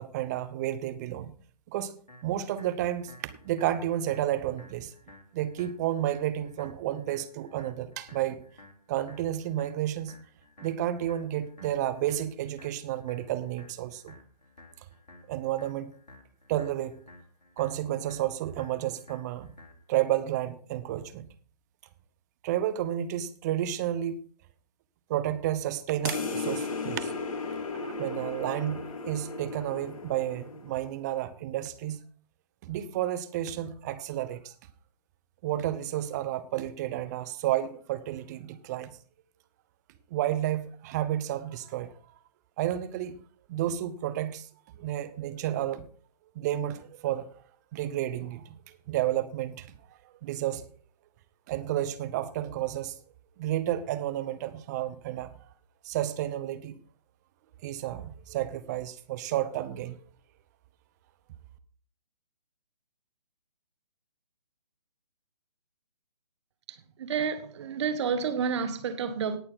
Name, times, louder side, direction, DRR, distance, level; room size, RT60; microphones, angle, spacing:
voice 1, 0.0-1.3 1.7-4.9 5.3-8.4 8.9-10.1 10.6-14.1 15.3-15.9 16.5-17.0 17.6-19.5 19.9-21.3 22.4-24.2 25.1-27.1 27.8-32.0 32.6-34.5 35.4-38.9 40.1-41.9 42.6-43.2 43.5-44.5 44.8-45.9 46.3-47.2 47.7-49.7 50.2-50.6 51.5-52.9 53.4-55.3 55.8-56.7 57.6-60.0, right 12 dB, 25° right, 0.9 m, -31 dB
sound 1, 2.1-20.1, left 2 dB, 80° left, 3.1 m, -54 dB
sound 2, 26.0-30.9, left 4 dB, 55° left, 2.3 m, -35 dB
voice 2, 66.7-69.4, right 6 dB, 45° right, 1.8 m, -30 dB
18.0 x 6.8 x 4.0 m
figure-of-eight pair, 145°, 21 cm